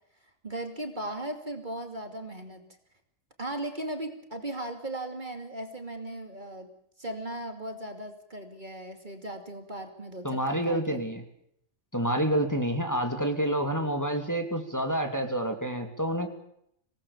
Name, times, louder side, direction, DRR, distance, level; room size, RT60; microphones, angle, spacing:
voice 1, 0.4-2.7 3.4-6.7 7.0-11.0, right 1 dB, 35° right, 6 dB, 2.9 m, -37 dB
voice 2, 10.2-11.2 11.9-16.3, right 1 dB, 15° left, 5 dB, 2.9 m, -28 dB
26.0 x 19.0 x 7.3 m, 0.72 s
omnidirectional pair, 1.3 m